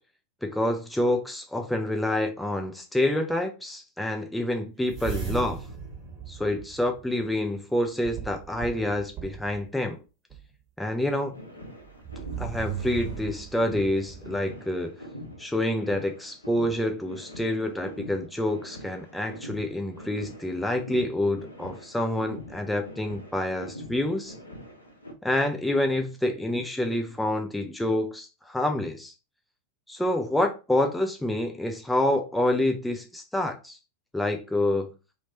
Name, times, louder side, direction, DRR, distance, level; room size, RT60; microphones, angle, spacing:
voice 1, 0.4-5.6 6.3-10.0 10.8-11.4 12.4-15.0 15.4-24.4 25.2-29.1 29.9-33.8 34.1-34.9, left 1 dB, 5° left, 0.4 m, -27 dB
sound 1, 4.9-7.3 8.0-9.6 10.3-10.4 11.9-14.4, right 7 dB, 30° right, 1.5 m, -37 dB
sound 2, 11.3-25.1, left 1 dB, 80° left, 0.7 m, -44 dB
2.9 x 2.8 x 2.8 m
figure-of-eight pair, 90°, 0 cm